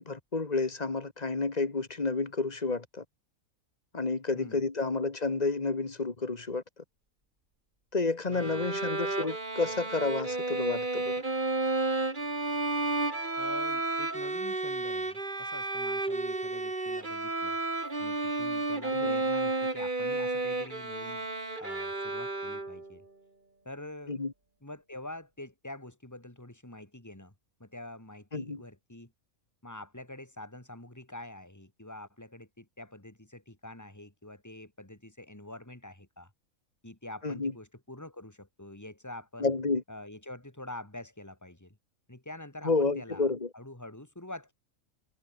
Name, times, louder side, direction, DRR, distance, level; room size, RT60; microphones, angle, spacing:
voice 1, 0.0-3.0 3.9-6.6 7.9-11.1 18.9-19.1 24.1-24.3 28.3-28.6 37.2-37.5 39.4-39.8 42.6-43.5, left 3 dB, 30° left, 1.9 m, -30 dB
voice 2, 4.3-4.7 8.3-8.7 13.4-17.6 18.0-21.3 21.6-23.0 23.6-24.2 24.6-27.3 27.6-29.1 29.6-36.3 36.8-39.5 39.9-41.8 42.1-44.5, left 1 dB, 10° left, 3.3 m, -46 dB
Bowed string instrument, 8.3-23.0, right 2 dB, 35° right, 2.9 m, -32 dB
omnidirectional pair, 1.5 m